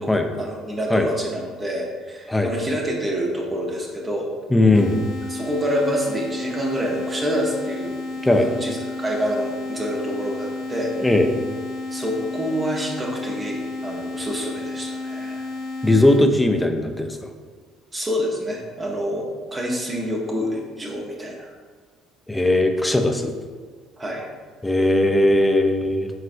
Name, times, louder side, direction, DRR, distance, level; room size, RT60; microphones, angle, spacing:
voice 1, 0.4-4.3 5.3-10.9 11.9-15.5 17.9-21.5 24.0-24.3, equal, 25° right, -1 dB, 0.7 m, -27 dB
voice 2, 4.5-5.1 8.2-8.5 11.0-11.3 15.8-17.2 22.3-23.3 24.6-26.1, left 1 dB, 10° left, 5 dB, 0.4 m, -18 dB
sound 1, 4.7-16.2, left 3 dB, 65° left, 0.6 m, -32 dB
4.4 x 3.2 x 2.6 m, 1.5 s
supercardioid pair, 80°, 0 cm